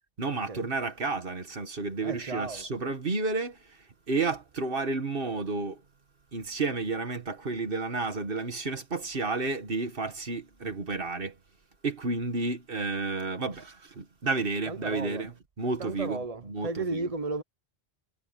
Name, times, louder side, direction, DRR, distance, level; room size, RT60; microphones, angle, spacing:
voice 1, 0.2-3.6 4.1-5.8 6.3-11.3 11.8-17.1, right 3 dB, 55° right, 1.8 m, -31 dB
voice 2, 2.0-2.7 14.7-15.2 15.8-17.4, right 3 dB, 35° right, 0.9 m, -34 dB
omnidirectional pair, 1.1 m